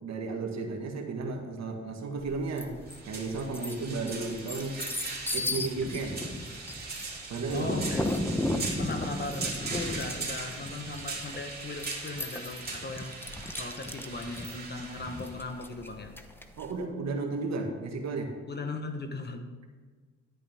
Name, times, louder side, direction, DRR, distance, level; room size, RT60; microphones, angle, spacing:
voice 1, 0.0-4.8 5.3-6.2 7.3-7.9 16.6-18.3, right 3 dB, 60° right, 3 dB, 1.8 m, -34 dB
sound 1, 2.2-16.8, right 3 dB, 30° right, 2.9 m, -40 dB
sound 2, 2.6-3.0 3.4-16.6, left 1 dB, 5° left, 0.8 m, -35 dB
voice 2, 7.5-8.2 8.8-16.2 18.5-19.5, left 3 dB, 35° left, 6 dB, 1.2 m, -38 dB
11.0 x 10.0 x 3.6 m, 1.5 s
cardioid pair, 90°, 30 cm